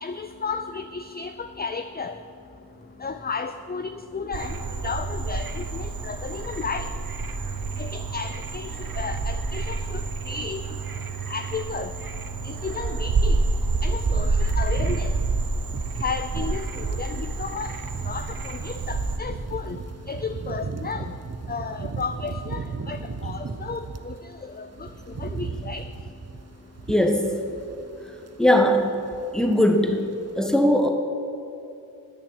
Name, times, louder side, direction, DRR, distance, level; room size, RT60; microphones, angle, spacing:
voice 1, 0.0-2.2 3.0-6.9 7.8-10.6 11.3-11.9 12.4-13.4 13.8-15.1 16.0-17.8 18.1-19.8 20.1-21.1 21.5-24.9 25.2-25.8, left 5 dB, 25° left, 8 dB, 0.4 m, -33 dB
Frog, 4.3-19.2, right 3 dB, 60° right, 0.9 m, -28 dB
sound 1, 13.3-24.2 24.5-28.0 28.2-28.5 28.8-29.6 29.9-30.1, right 4 dB, 40° right, 0.7 m, -36 dB
voice 2, 26.9-27.3 28.4-28.9 29.3-30.0 30.4-30.9, left 1 dB, ahead, 3 dB, 1.3 m, -19 dB
10.5 x 9.0 x 8.0 m, 2.8 s
wide cardioid pair, 65°, 39 cm